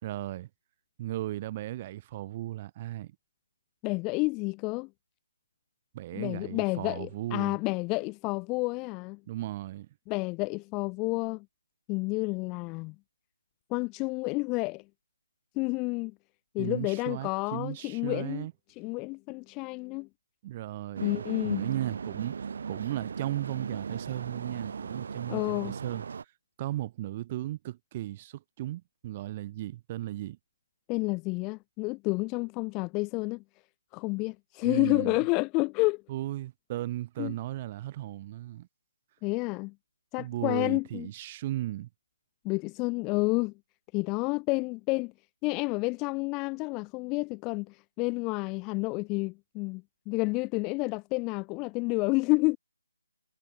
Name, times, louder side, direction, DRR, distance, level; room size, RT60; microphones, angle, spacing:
voice 1, 0.0-0.5 1.0-3.2 5.9-7.6 9.3-9.9 16.6-18.5 20.4-22.4 22.7-26.0 26.6-30.4 34.6-35.2 36.1-38.7 40.2-41.9, right 15 dB, 25° right, 0.9 m, -36 dB
voice 2, 3.8-4.9 6.1-9.2 10.1-11.4 11.9-12.9 13.7-14.8 15.6-16.1 16.5-18.5 18.8-20.1 21.0-21.6 25.3-25.7 30.9-33.4 33.9-36.0 37.2-37.3 39.2-39.7 40.1-41.1 42.4-43.5 43.9-45.1 45.4-52.6, left 27 dB, 15° left, 0.4 m, -30 dB
sound 1, 21.0-26.2, right 6 dB, 50° right, 2.5 m, -37 dB
figure-of-eight pair, 160°, 0 cm